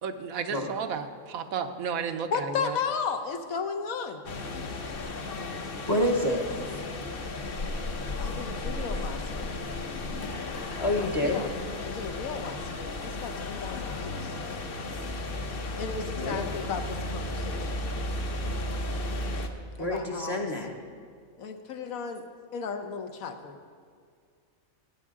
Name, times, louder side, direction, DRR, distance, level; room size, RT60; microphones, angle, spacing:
voice 1, 0.0-2.8, right 6 dB, 85° right, 8 dB, 1.2 m, -33 dB
voice 2, 2.3-4.2 8.2-9.6 11.0-11.5 11.8-14.3 15.8-17.8 19.8-20.5 21.4-22.2 22.5-23.6, left 6 dB, 80° left, 6 dB, 1.3 m, -34 dB
sound 1, 4.3-19.5, left 2 dB, 50° left, 1.0 m, -34 dB
voice 3, 5.9-6.8 10.8-11.4 16.1-16.5 19.8-20.7, left 1 dB, 25° left, 2 dB, 0.7 m, -28 dB
19.0 x 9.5 x 3.7 m, 2.1 s
omnidirectional pair, 1.4 m